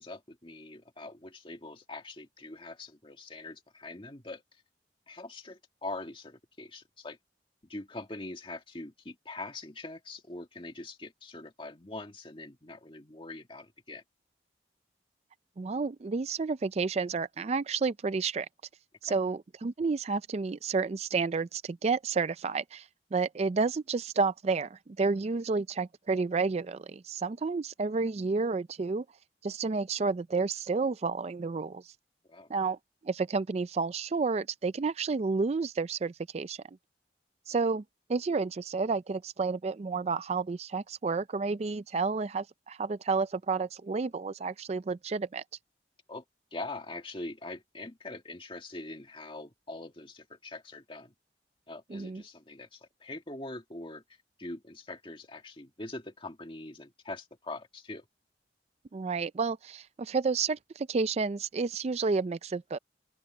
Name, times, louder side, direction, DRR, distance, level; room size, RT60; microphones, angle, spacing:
voice 1, 0.0-4.4 5.1-7.2 7.7-14.0 19.1-19.2 32.3-32.5 46.1-46.2 46.5-51.1 51.7-54.0 54.4-58.1, left 2 dB, 30° left, 2.0 m, -43 dB
voice 2, 15.6-18.5 19.0-29.0 29.4-31.9 32.5-32.8 33.0-36.6 37.5-37.8 38.1-45.4 51.9-52.2 58.9-62.8, right 4 dB, 35° right, 0.4 m, -30 dB
open air
head